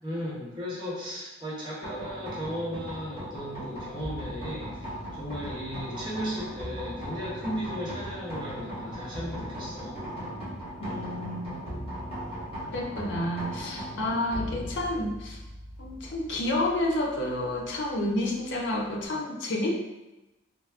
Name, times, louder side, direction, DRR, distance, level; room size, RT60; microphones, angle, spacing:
voice 1, 0.0-10.0 14.5-14.7, equal, 25° right, -7 dB, 1.0 m, -36 dB
sound 1, 1.8-19.0, equal, 30° left, 1.1 m, -39 dB
voice 2, 10.8-11.6 12.7-15.4 15.8-19.7, left 1 dB, 60° left, 0 dB, 0.5 m, -30 dB
4.4 x 2.1 x 2.4 m, 1.0 s
head